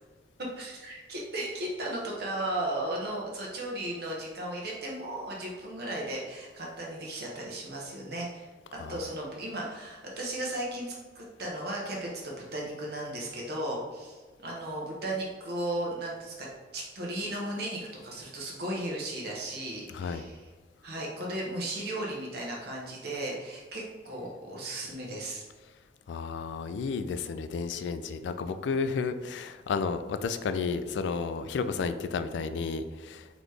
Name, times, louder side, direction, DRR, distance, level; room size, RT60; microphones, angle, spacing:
voice 1, 0.5-8.5 8.9-16.5 16.7-20.4 20.8-25.4, right 1 dB, 60° right, -2 dB, 1.0 m, -35 dB
voice 2, 19.9-20.2 26.1-33.3, left 5 dB, 80° left, 10 dB, 0.3 m, -32 dB
4.0 x 3.0 x 3.2 m, 1.4 s
head